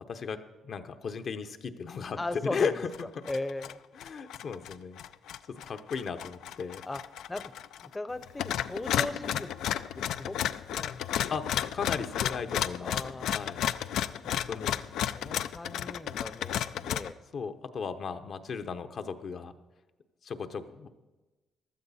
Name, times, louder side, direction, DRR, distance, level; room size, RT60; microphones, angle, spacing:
voice 1, 0.1-0.4 0.6-2.9 3.9-5.0 5.5-6.8 11.3-12.9 13.3-13.6 14.2-14.8 17.3-19.5 20.2-20.9, left 6 dB, 55° left, 8 dB, 0.9 m, -35 dB
voice 2, 2.2-2.9 3.2-3.8 5.6-5.8 6.8-7.0 7.3-7.5 7.8-9.5 9.9-11.2 12.8-13.4 15.2-17.2, left 2 dB, 20° left, 13 dB, 0.7 m, -38 dB
sound 1, 2.4-2.7 2.9-3.7 4.0-7.9 8.2-17.1, left 10 dB, 80° left, 0.4 m, -33 dB
15.0 x 12.0 x 4.2 m, 1.2 s
cardioid pair, 90°, 0 cm